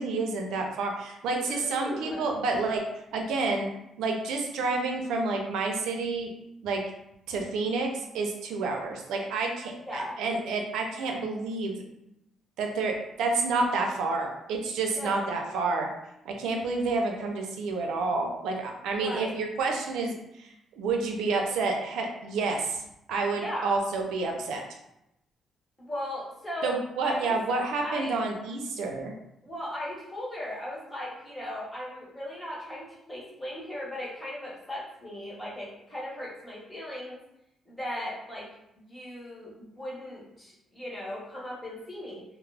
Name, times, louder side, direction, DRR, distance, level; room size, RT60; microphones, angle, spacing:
voice 1, 0.0-2.8 3.1-3.7 4.0-6.3 6.6-6.8 7.3-11.8 12.6-15.9 16.3-20.5 20.8-22.8 23.1-24.6 26.6-29.1, right 3 dB, 85° right, 2 dB, 0.5 m, -29 dB
voice 2, 1.4-2.3 9.8-10.1 14.9-15.3 19.0-19.4 23.3-23.8 25.8-27.4 27.8-28.1 29.4-37.2 37.7-38.5 38.8-42.2, left 1 dB, 15° left, -6 dB, 1.1 m, -37 dB
2.2 x 2.0 x 3.2 m, 0.84 s
cardioid pair, 90°, 0 cm